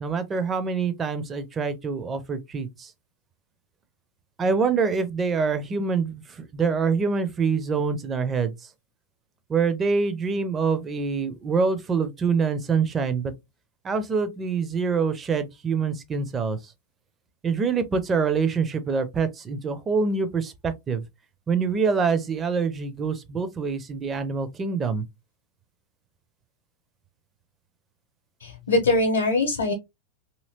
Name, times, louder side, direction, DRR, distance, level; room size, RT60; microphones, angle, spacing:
voice 1, 0.0-2.9 4.4-8.5 9.5-13.3 13.8-16.6 17.4-21.0 21.5-25.0, right 5 dB, 20° right, 0.5 m, -25 dB
voice 2, 28.4-29.7, left 2 dB, 65° left, 0.7 m, -22 dB
2.8 x 2.8 x 2.7 m
figure-of-eight pair, 90°, 0 cm